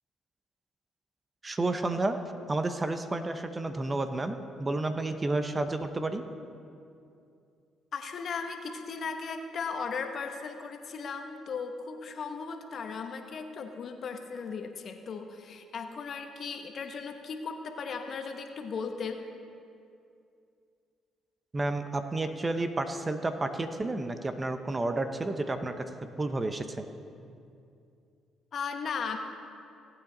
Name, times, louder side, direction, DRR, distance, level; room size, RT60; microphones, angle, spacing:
voice 1, 1.4-2.2 2.5-6.2 21.5-26.9, right 2 dB, 25° right, 8 dB, 0.8 m, -31 dB
voice 2, 7.9-19.2 28.5-29.2, left 5 dB, 55° left, 5 dB, 1.1 m, -37 dB
17.5 x 8.9 x 4.0 m, 2.5 s
supercardioid pair, 65°, 0 cm